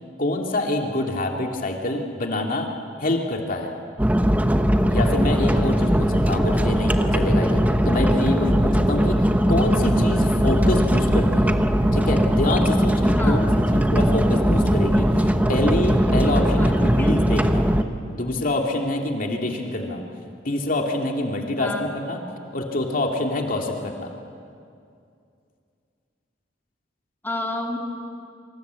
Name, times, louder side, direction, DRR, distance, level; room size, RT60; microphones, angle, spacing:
voice 1, 0.2-2.7 3.0-3.7 4.9-11.6 11.9-17.7 18.1-20.0 20.4-22.2 22.5-24.1, left 1 dB, 50° left, 1 dB, 2.7 m, -26 dB
sound 1, 4.0-17.8, equal, 10° right, 1.1 m, -19 dB
voice 2, 16.6-17.1 21.6-21.8 27.2-27.8, left 1 dB, 10° left, 0 dB, 2.8 m, -30 dB
27.0 x 25.5 x 8.3 m, 2.4 s
head